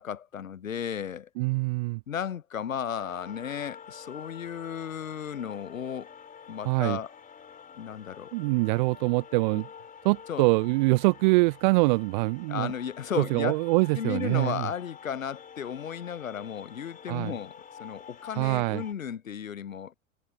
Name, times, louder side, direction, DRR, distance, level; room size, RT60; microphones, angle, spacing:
voice 1, 0.0-1.3 2.1-6.1 6.5-7.1 7.8-8.3 10.3-10.5 12.5-13.6 14.0-19.9, left 8 dB, 85° left, 0.7 m, -34 dB
voice 2, 1.4-2.0 6.6-7.0 8.3-9.7 10.0-12.7 13.2-14.7 17.1-17.3 18.4-18.8, right 24 dB, 40° right, 0.4 m, -24 dB
sound 1, 2.9-18.9, left 7 dB, 20° left, 3.7 m, -48 dB
figure-of-eight pair, 90°, 40 cm